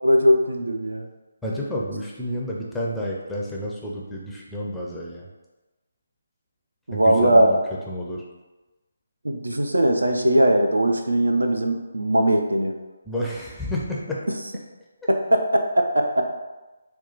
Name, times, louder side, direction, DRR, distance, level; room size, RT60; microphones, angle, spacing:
voice 1, 0.0-1.1 6.9-7.6 9.2-12.7 15.1-16.3, right 1 dB, 70° right, 4 dB, 0.5 m, -20 dB
voice 2, 1.4-5.3 6.9-7.6 7.9-8.2 13.1-14.2, equal, 5° left, -4 dB, 0.5 m, -30 dB
4.3 x 2.3 x 4.0 m, 1.1 s
figure-of-eight pair, 150°, 0 cm